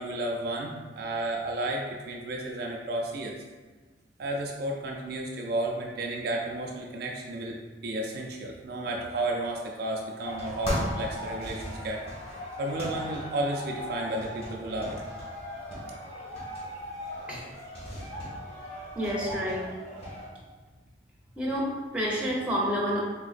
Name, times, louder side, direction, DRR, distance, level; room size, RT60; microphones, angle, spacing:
voice 1, 0.0-3.4 4.2-7.6 7.8-12.0 12.6-14.9, right 1 dB, 55° right, 0 dB, 0.4 m, -32 dB
sound 1, 10.2-20.3, equal, 35° left, 1.3 m, -37 dB
voice 2, 18.9-19.7 21.4-23.0, equal, 5° right, -6 dB, 0.7 m, -29 dB
3.8 x 3.5 x 2.4 m, 1.3 s
head